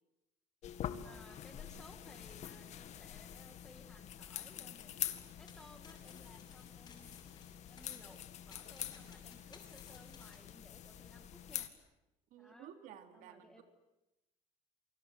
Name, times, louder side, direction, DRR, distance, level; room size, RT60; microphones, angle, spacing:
sound 1, 0.6-11.7, left 10 dB, 50° left, 2.0 m, -46 dB
voice 1, 1.0-4.9 5.4-7.3 7.7-8.2 8.5-11.7 12.4-12.7 13.1-13.6, left 1 dB, 5° left, 5 dB, 2.1 m, -60 dB
sound 2, 5.1-10.4, left 5 dB, 30° left, 7.4 m, -61 dB
voice 2, 12.3-13.6, right 9 dB, 60° right, 7 dB, 2.8 m, -54 dB
29.0 x 25.5 x 8.0 m, 0.94 s
cardioid pair, 160°, 15 cm